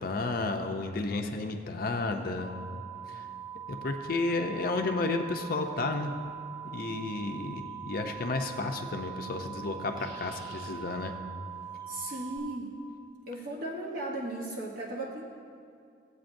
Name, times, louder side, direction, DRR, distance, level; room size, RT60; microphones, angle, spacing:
voice 1, 0.0-2.5 3.1-3.3 3.7-6.1 6.6-11.2, left 3 dB, 50° left, 4 dB, 0.5 m, -32 dB
sound 1, 2.4-12.4, right 8 dB, 20° right, 1.0 m, -42 dB
Redwing Blackbird - Miner's Marsh, 5.0-5.1 7.6-7.9 9.7-10.7 11.6-12.1, right 1 dB, 80° right, 2.0 m, -55 dB
voice 2, 11.9-12.7 13.3-15.2, right 1 dB, 50° right, -3 dB, 0.9 m, -36 dB
16.5 x 8.0 x 2.6 m, 2.4 s
head